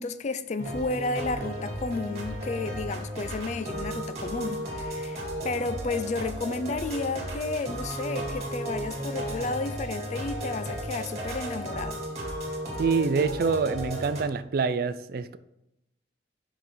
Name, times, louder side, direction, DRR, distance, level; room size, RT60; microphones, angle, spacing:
voice 1, 0.0-12.0, left 3 dB, 40° left, 0.4 m, -32 dB
sound 1, 0.6-14.2, right 1 dB, 40° right, 1.8 m, -34 dB
voice 2, 12.8-15.4, right 5 dB, 55° right, 0.4 m, -26 dB
6.2 x 5.2 x 4.4 m
head